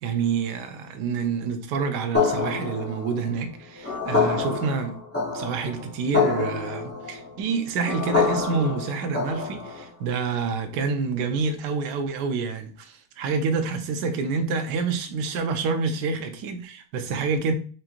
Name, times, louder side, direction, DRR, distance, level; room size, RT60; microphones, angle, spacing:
voice 1, 0.0-5.0 5.3-17.5, right 5 dB, 75° right, 1.0 m, -27 dB
sound 1, 2.1-9.9, left 5 dB, 20° left, 0.3 m, -27 dB
4.9 x 2.9 x 2.5 m
omnidirectional pair, 2.2 m